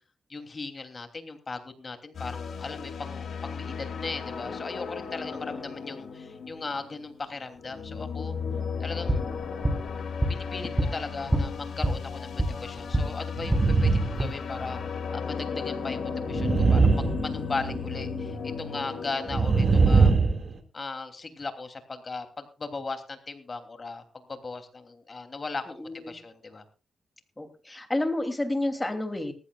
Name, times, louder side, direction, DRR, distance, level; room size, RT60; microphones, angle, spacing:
voice 1, 0.3-8.4 8.8-9.2 10.3-20.1 20.7-24.0 24.3-26.6, left 3 dB, 40° left, 7 dB, 3.0 m, -37 dB
sound 1, 2.1-19.8, left 5 dB, 70° left, 2.6 m, -35 dB
sound 2, 8.9-13.1 13.4-14.2, right 1 dB, 15° right, 3.8 m, -28 dB
sound 3, 13.4-14.3 14.6-14.8 16.3-17.8 19.3-20.6, right 4 dB, 50° right, 2.2 m, -21 dB
voice 2, 25.7-26.2 27.4-29.3, left 1 dB, 15° left, 7 dB, 2.8 m, -30 dB
19.0 x 15.0 x 2.4 m, 0.34 s
cardioid pair, 65°, 0 cm